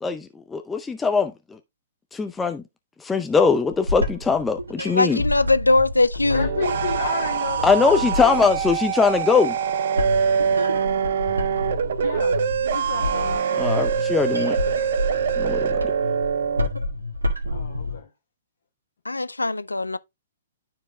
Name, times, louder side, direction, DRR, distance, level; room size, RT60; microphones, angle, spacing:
voice 1, 0.0-1.3 2.1-2.6 3.0-5.2 7.6-9.6 13.6-14.6 15.4-15.7, left 5 dB, 10° left, 0.5 m, -21 dB
sound 1, 3.6-18.0, left 1 dB, 80° right, 1.9 m, -30 dB
voice 2, 4.9-6.5 19.1-20.0, left 2 dB, 80° left, 0.4 m, -21 dB
sound 2, 6.2-16.7, right 7 dB, 55° right, 0.6 m, -24 dB
voice 3, 6.3-8.5 12.0-12.4 12.7-13.7 17.5-18.1, left 5 dB, 65° left, 1.2 m, -32 dB
12.0 x 4.6 x 2.2 m
figure-of-eight pair, 115°, 0 cm